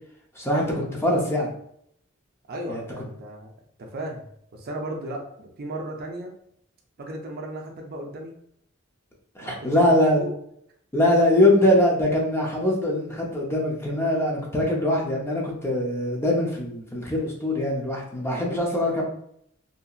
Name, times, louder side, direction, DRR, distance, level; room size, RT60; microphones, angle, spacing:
voice 1, 0.4-1.5 2.7-2.8 9.3-10.2 10.9-19.0, left 1 dB, 15° left, -2 dB, 0.6 m, -22 dB
voice 2, 2.5-3.5 3.8-4.3 4.5-6.3 7.0-8.3 9.4-10.3 18.8-19.0, right 1 dB, 50° right, 1 dB, 0.5 m, -35 dB
2.8 x 2.7 x 2.4 m, 0.70 s
head